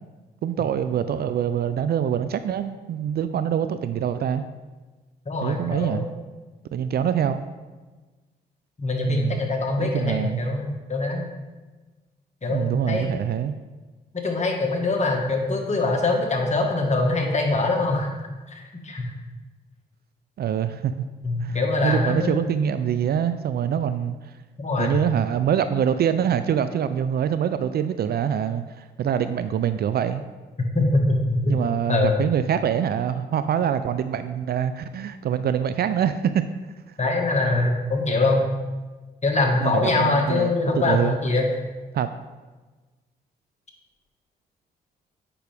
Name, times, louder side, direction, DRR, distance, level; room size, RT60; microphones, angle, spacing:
voice 1, 0.4-4.4 5.4-6.0 6.7-7.4 9.1-9.4 9.8-10.4 12.5-13.5 20.4-21.1 21.4-24.2 24.8-30.2 31.5-36.5 39.6-40.5 40.9-41.2 41.9-42.1, right 9 dB, 60° right, 11 dB, 0.4 m, -25 dB
voice 2, 5.3-6.1 8.8-11.3 12.4-13.2 14.1-18.1 18.6-19.1 21.2-22.6 24.6-25.0 30.7-31.6 31.9-32.2 37.0-38.5 39.2-41.5, left 2 dB, 40° left, 1 dB, 1.7 m, -23 dB
8.4 x 5.7 x 3.5 m, 1.3 s
supercardioid pair, 55°, 18 cm